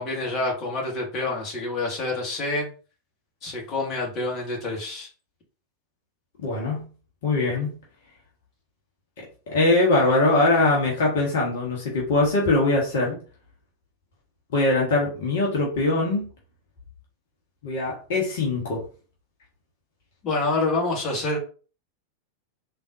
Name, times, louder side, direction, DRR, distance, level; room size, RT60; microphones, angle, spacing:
voice 1, 0.0-2.7 3.4-5.1 20.2-21.4, left 2 dB, 35° left, -1 dB, 1.3 m, -27 dB
voice 2, 6.4-6.8 7.2-7.7 9.5-13.2 14.5-16.2 17.6-18.8, left 2 dB, 55° left, -2 dB, 1.1 m, -22 dB
3.5 x 2.5 x 2.6 m, 0.37 s
figure-of-eight pair, 90°, 0 cm